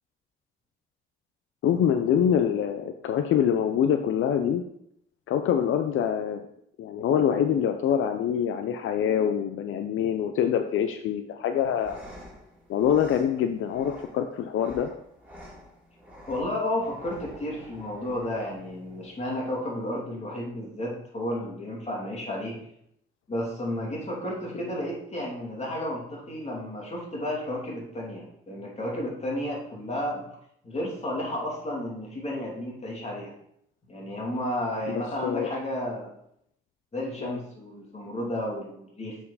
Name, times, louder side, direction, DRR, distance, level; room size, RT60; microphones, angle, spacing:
voice 1, 1.6-4.6 5.3-6.4 6.8-12.0 12.7-14.9 24.5-24.7 34.9-35.5 37.2-37.4, left 9 dB, 75° left, 7 dB, 0.6 m, -25 dB
sound 1, 11.5-19.5, equal, 5° right, 3.1 m, -49 dB
voice 2, 16.3-22.6 23.3-30.2 30.6-33.3 33.9-36.1 36.9-39.2, left 1 dB, 30° left, -3 dB, 3.0 m, -32 dB
7.3 x 4.6 x 4.2 m, 0.72 s
cardioid pair, 80°, 21 cm